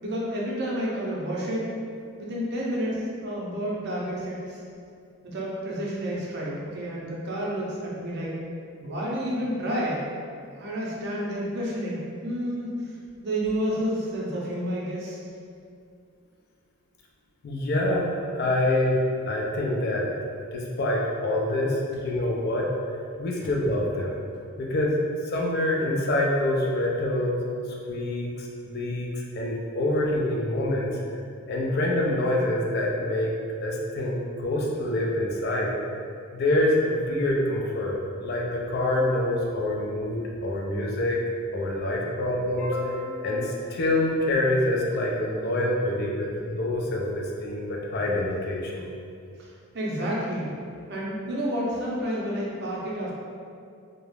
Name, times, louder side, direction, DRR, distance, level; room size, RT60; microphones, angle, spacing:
voice 1, 0.0-1.7 2.2-4.6 5.2-8.4 8.8-10.1 10.5-12.9 13.2-15.2 49.4-49.5 49.7-50.5 50.9-53.1, equal, 50° right, -5 dB, 0.5 m, -30 dB
voice 2, 17.4-19.0 19.3-20.1 20.5-22.7 23.2-24.1 24.6-25.0 25.2-27.5 27.9-30.9 31.5-33.3 33.6-35.7 36.3-41.2 41.5-48.9, left 1 dB, 50° left, -2 dB, 0.3 m, -26 dB
2.3 x 2.0 x 3.1 m, 2.4 s
head